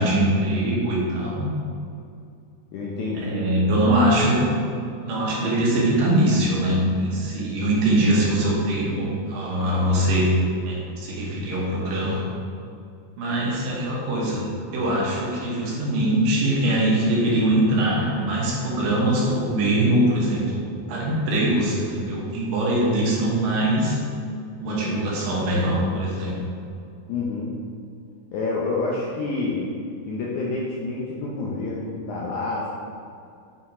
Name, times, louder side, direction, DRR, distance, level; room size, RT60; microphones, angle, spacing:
voice 1, 0.0-1.5 3.1-4.4 5.0-10.3 10.6-12.2 13.2-14.4 14.7-20.6 20.9-24.0 24.6-26.4, right 1 dB, 75° right, -4 dB, 2.8 m, -22 dB
voice 2, 2.7-3.5 24.6-24.9 27.1-27.6 28.3-29.7 30.0-32.7, left 3 dB, 75° left, -4 dB, 1.8 m, -28 dB
7.8 x 4.2 x 4.2 m, 2.5 s
omnidirectional pair, 4.2 m